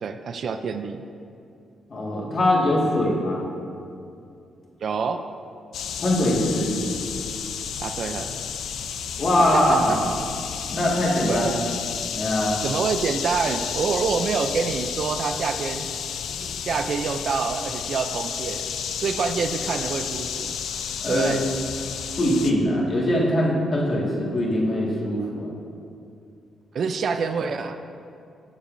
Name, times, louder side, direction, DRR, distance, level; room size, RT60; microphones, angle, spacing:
voice 1, 0.0-1.0 4.8-5.2 7.8-8.3 9.5-10.0 11.3-11.4 12.6-15.9 16.7-18.7 19.0-20.6 21.1-21.4 26.7-27.8, right 5 dB, 50° right, 8 dB, 0.4 m, -26 dB
voice 2, 1.9-3.4 6.0-6.7 9.2-10.0 10.7-11.5 12.1-12.6 21.0-21.4 22.2-25.5, left 1 dB, 35° left, -4 dB, 1.8 m, -22 dB
sound 1, 5.7-22.5, left 7 dB, 75° left, 0.5 m, -31 dB
16.0 x 7.2 x 2.6 m, 2.5 s
cardioid pair, 140°, 0 cm